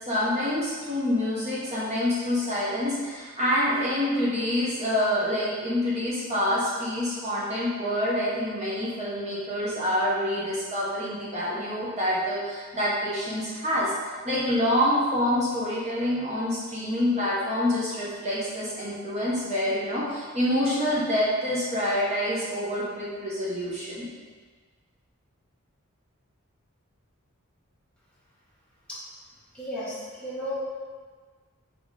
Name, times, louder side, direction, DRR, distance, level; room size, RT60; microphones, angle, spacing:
voice 1, 0.0-13.9 14.2-24.1, left 1 dB, 30° right, -7 dB, 1.1 m, -27 dB
voice 2, 29.5-30.6, equal, 5° left, -9 dB, 1.3 m, -34 dB
4.8 x 4.2 x 4.8 m, 1.5 s
head